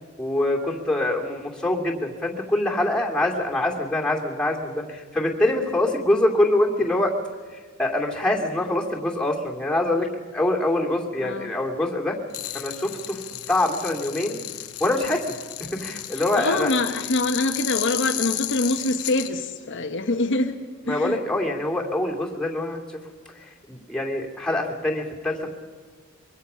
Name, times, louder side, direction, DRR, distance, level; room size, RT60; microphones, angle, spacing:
voice 1, 0.2-7.1 7.5-12.2 12.5-13.2 13.5-14.4 14.8-15.3 15.6-16.7 20.9-23.0 23.4-25.5, left 1 dB, 5° left, -1 dB, 2.5 m, -24 dB
sound 1, 12.3-19.3, left 14 dB, 85° left, 0.9 m, -33 dB
voice 2, 16.3-20.6 20.8-21.2, left 2 dB, 60° left, 5 dB, 1.1 m, -25 dB
24.5 x 23.0 x 5.6 m, 1.5 s
head